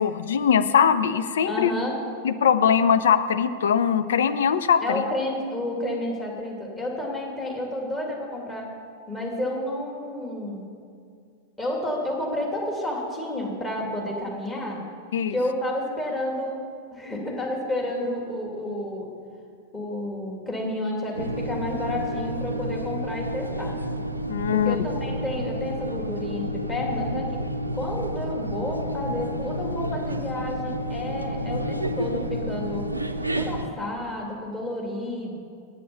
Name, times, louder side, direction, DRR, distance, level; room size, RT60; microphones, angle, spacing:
voice 1, 0.0-1.7 2.2-5.0 15.1-15.4 24.3-24.8, left 7 dB, 65° left, 11 dB, 0.5 m, -21 dB
voice 2, 1.4-2.0 4.8-8.7 9.1-10.6 11.6-14.8 15.3-16.6 16.9-19.1 19.7-23.8 24.5-27.4 27.7-32.9 33.3-35.3, left 1 dB, 15° left, -2 dB, 2.5 m, -30 dB
sound 1, 21.1-33.7, equal, 85° right, 0.5 m, -30 dB
8.7 x 8.5 x 7.0 m, 2.2 s
figure-of-eight pair, 90°, 0 cm